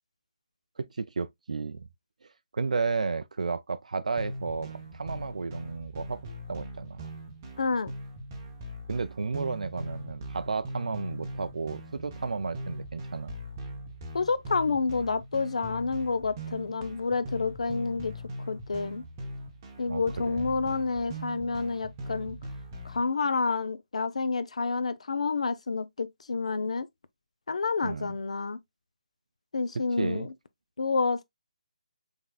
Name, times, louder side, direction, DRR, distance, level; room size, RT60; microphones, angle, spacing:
voice 1, 0.8-1.9 2.5-7.0 8.9-13.4 19.9-20.5 27.8-28.2 30.0-30.3, right 4 dB, 70° right, 0.3 m, -33 dB
sound 1, 4.2-23.0, equal, 15° right, 0.7 m, -41 dB
voice 2, 7.6-7.9 14.1-18.1 18.5-19.0 19.8-22.4 22.8-26.9 27.5-28.6 29.5-30.3 30.8-31.2, left 4 dB, 55° left, 0.5 m, -29 dB
5.6 x 3.6 x 2.2 m
hypercardioid pair, 175°, 4 cm